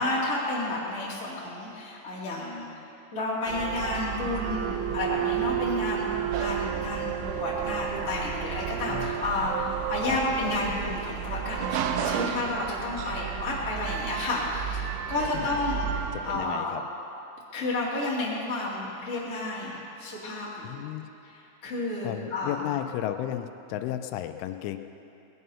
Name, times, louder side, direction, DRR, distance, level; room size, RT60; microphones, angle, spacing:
voice 1, 0.0-2.6 3.1-15.8 16.2-16.7 17.5-20.8 21.6-22.6, left 2 dB, 30° left, -7 dB, 1.3 m, -31 dB
sound 1, 3.5-16.5, right 9 dB, 80° right, 3.0 m, -31 dB
voice 2, 8.9-9.2 10.1-10.2 15.3-15.6 16.1-16.8 20.6-21.1 22.0-24.8, left 12 dB, 85° left, 8 dB, 3.1 m, -33 dB
19.0 x 11.0 x 5.6 m, 2.8 s
omnidirectional pair, 5.6 m